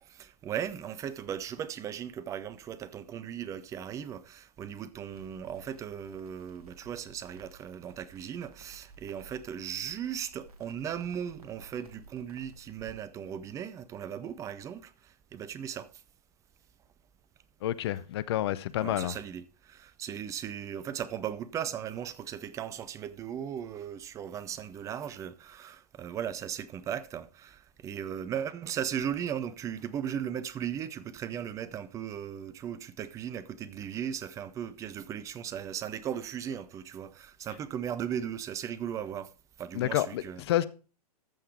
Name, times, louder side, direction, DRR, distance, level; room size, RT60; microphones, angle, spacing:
voice 1, 0.0-15.9 18.8-39.3 39.6-40.4, right 9 dB, 15° right, 0.6 m, -37 dB
Crackle, 5.1-12.9, right 3 dB, 65° right, 2.0 m, -55 dB
voice 2, 17.6-19.1 39.7-40.7, left 13 dB, 40° left, 0.6 m, -29 dB
14.0 x 5.7 x 4.7 m
figure-of-eight pair, 115°, 20 cm